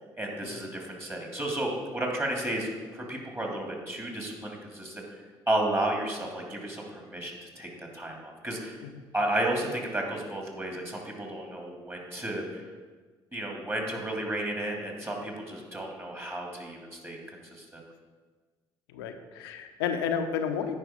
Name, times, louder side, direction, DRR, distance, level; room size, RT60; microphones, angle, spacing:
voice 1, 0.1-5.0 5.5-8.8 9.1-12.6 13.3-17.2 17.5-17.8, right 1 dB, 20° right, 0 dB, 2.7 m, -32 dB
voice 2, 18.9-20.7, left 7 dB, 80° left, 7 dB, 0.7 m, -32 dB
9.8 x 5.1 x 5.0 m, 1.4 s
hypercardioid pair, 55°, 13 cm